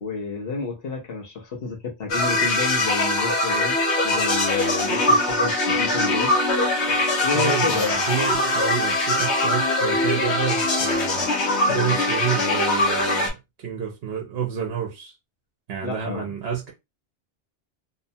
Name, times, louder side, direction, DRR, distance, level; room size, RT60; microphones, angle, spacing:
voice 1, 0.0-3.8 4.0-6.3 7.2-8.1 15.8-16.3, left 5 dB, 65° left, 1.0 m, -30 dB
sound 1, 2.1-13.3, left 2 dB, 85° left, 1.1 m, -22 dB
voice 2, 7.3-11.2 11.7-15.1 15.7-16.7, right 8 dB, 70° right, 0.9 m, -29 dB
2.8 x 2.1 x 2.6 m
omnidirectional pair, 1.1 m